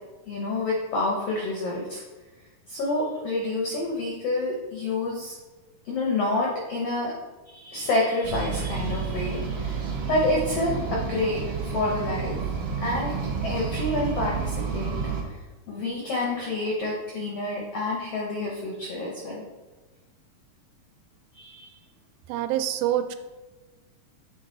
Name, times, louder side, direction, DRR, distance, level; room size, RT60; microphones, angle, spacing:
voice 1, 0.3-2.0 2.7-5.4 5.8-7.1 7.5-12.4 12.8-13.1 13.4-15.0 15.7-19.4 21.3-21.7, left 2 dB, 80° left, -3 dB, 1.3 m, -28 dB
sound 1, 8.2-15.2, right 5 dB, 70° right, 1.4 m, -30 dB
voice 2, 22.3-23.2, right 12 dB, 85° right, 9 dB, 2.3 m, -26 dB
7.7 x 3.8 x 3.8 m, 1.2 s
omnidirectional pair, 4.1 m